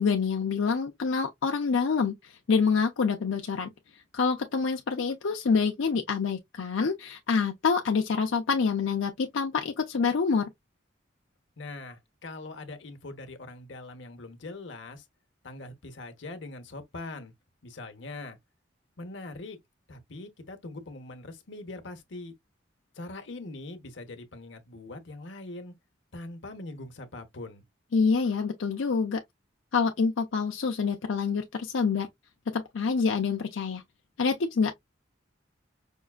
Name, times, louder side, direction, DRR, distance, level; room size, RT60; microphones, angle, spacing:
voice 1, 0.0-3.7 4.1-10.5 27.9-29.2 29.7-32.1 32.5-33.8 34.2-34.7, left 5 dB, 90° left, 0.5 m, -26 dB
voice 2, 11.6-15.0 15.4-17.3 17.6-18.4 19.0-19.6 19.9-22.3 23.0-25.7 26.1-27.6, left 2 dB, 70° left, 0.9 m, -42 dB
5.3 x 2.3 x 2.3 m
head